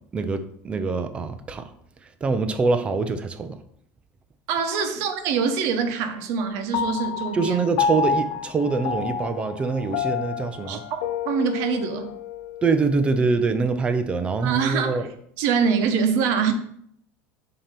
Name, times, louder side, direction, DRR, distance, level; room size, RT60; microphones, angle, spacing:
voice 1, 0.1-1.7 2.2-3.6 7.3-10.8 12.6-15.1, right 4 dB, 20° right, 10 dB, 0.5 m, -24 dB
voice 2, 4.5-7.7 10.7-10.8 11.2-12.0 14.4-15.0 15.4-16.5, right 6 dB, 55° right, 7 dB, 0.9 m, -24 dB
Piano, 6.7-13.4, left 6 dB, 80° left, 0.5 m, -29 dB
7.2 x 2.9 x 5.2 m, 0.68 s
cardioid pair, 155°, 6 cm